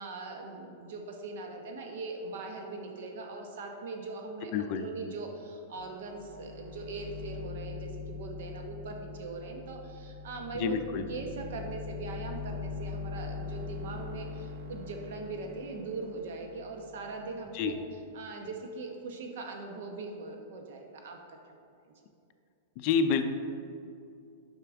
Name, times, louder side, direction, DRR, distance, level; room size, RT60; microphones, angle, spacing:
voice 1, 0.0-17.7 18.1-21.4, right 3 dB, 70° right, 3 dB, 0.9 m, -41 dB
voice 2, 4.5-4.9 10.5-11.1 17.5-17.8 22.8-23.2, left 6 dB, 45° left, 8 dB, 0.4 m, -28 dB
sound 1, 5.8-5.9 6.2-17.3, left 4 dB, 50° right, 1.4 m, -42 dB
6.8 x 5.7 x 3.5 m, 2.5 s
supercardioid pair, 145°, 0 cm